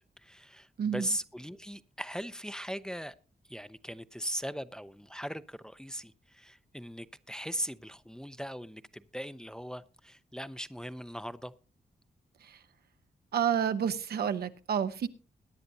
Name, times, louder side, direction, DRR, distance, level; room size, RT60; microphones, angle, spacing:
voice 1, 0.2-3.2 3.5-11.5, equal, 5° left, 0.5 m, -39 dB
voice 2, 13.3-15.1, right 8 dB, 85° right, 0.8 m, -29 dB
21.5 x 10.0 x 2.7 m
wide cardioid pair, 100°, 16 cm